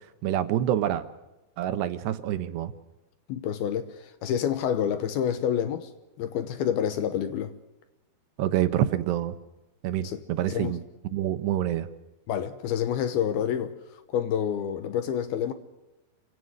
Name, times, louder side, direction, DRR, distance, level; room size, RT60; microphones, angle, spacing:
voice 1, 0.2-1.1 1.6-2.7 8.4-9.4 9.8-10.8 11.1-11.9, right 12 dB, 75° right, 3.0 m, -27 dB
voice 2, 3.3-5.9 6.2-7.5 10.0-10.2 10.5-10.8 12.3-13.7 14.1-15.5, left 9 dB, 70° left, 2.6 m, -28 dB
27.5 x 17.0 x 6.5 m
omnidirectional pair, 5.1 m